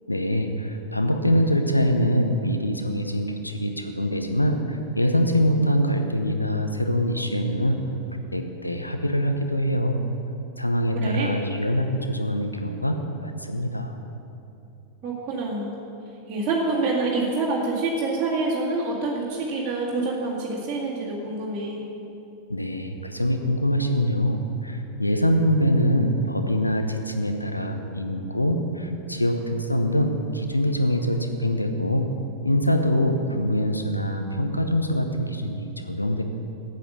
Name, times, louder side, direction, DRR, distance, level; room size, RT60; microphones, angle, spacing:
voice 1, 0.1-7.8 8.3-10.0 10.6-14.0 22.5-32.1 32.4-36.2, equal, 85° left, 5 dB, 0.7 m, -24 dB
voice 2, 10.9-11.3 15.0-15.7 16.3-21.8, right 3 dB, 30° right, -8 dB, 2.0 m, -26 dB
9.0 x 7.9 x 6.7 m, 2.7 s
figure-of-eight pair, 90°, 0 cm